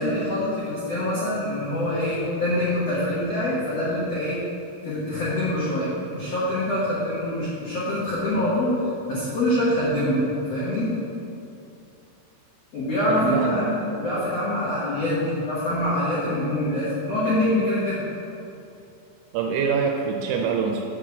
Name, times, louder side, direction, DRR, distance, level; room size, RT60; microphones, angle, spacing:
voice 1, 0.0-4.4 4.8-8.8 9.1-10.9 12.7-18.0, left 1 dB, 85° left, -9 dB, 1.4 m, -25 dB
voice 2, 13.1-13.6 19.3-20.9, right 6 dB, 85° right, 1 dB, 2.9 m, -24 dB
7.1 x 4.7 x 7.0 m, 2.7 s
omnidirectional pair, 5.3 m